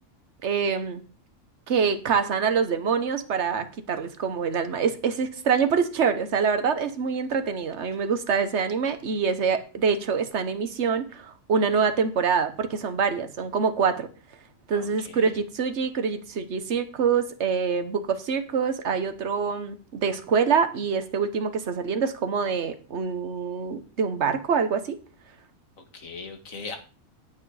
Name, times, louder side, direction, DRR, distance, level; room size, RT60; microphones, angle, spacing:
voice 1, 0.4-1.0 1.7-14.1 14.7-25.0, right 6 dB, 55° right, 9 dB, 1.4 m, -25 dB
voice 2, 14.7-15.2 25.9-26.8, left 4 dB, 75° left, 6 dB, 2.1 m, -39 dB
9.2 x 9.0 x 4.9 m, 0.37 s
omnidirectional pair, 1.4 m